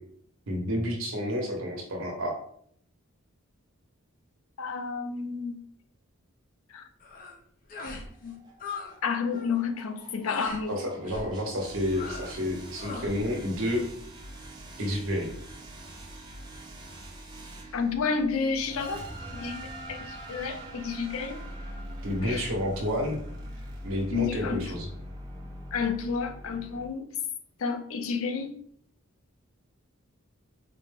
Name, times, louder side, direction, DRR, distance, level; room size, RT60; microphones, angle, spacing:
voice 1, 0.5-2.4 10.7-13.9 14.8-15.3 22.0-23.2 23.8-24.9, equal, 70° right, 1 dB, 1.0 m, -30 dB
voice 2, 4.6-5.6 6.7-6.9 8.2-8.3 9.0-10.7 17.7-19.1 19.3-19.6 19.9-21.4 22.2-22.5 24.1-24.6 25.7-27.1 27.6-28.5, left 5 dB, 85° left, 7 dB, 0.5 m, -30 dB
sound 1, 7.0-7.4 7.7-8.1 8.3-8.9 9.2-9.5 10.3-10.6 11.0-11.3 11.9-12.4 12.8-13.2, left 4 dB, 45° left, 0.6 m, -39 dB
sound 2, 8.0-26.9, right 1 dB, 20° right, 0.7 m, -43 dB
4.1 x 2.1 x 3.5 m, 0.63 s
head